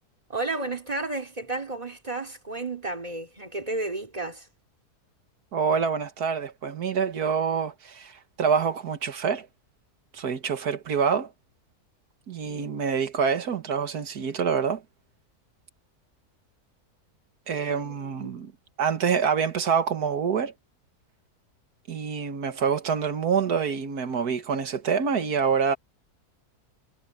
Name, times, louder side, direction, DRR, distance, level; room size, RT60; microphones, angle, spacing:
voice 1, 0.3-4.5 12.4-12.8 17.7-18.3, right 2 dB, 25° right, 3.2 m, -33 dB
voice 2, 5.5-9.5 10.1-11.3 12.3-14.8 17.5-18.5 18.8-20.5 21.9-25.8, right 6 dB, 85° right, 2.0 m, -26 dB
omnidirectional pair, 1.6 m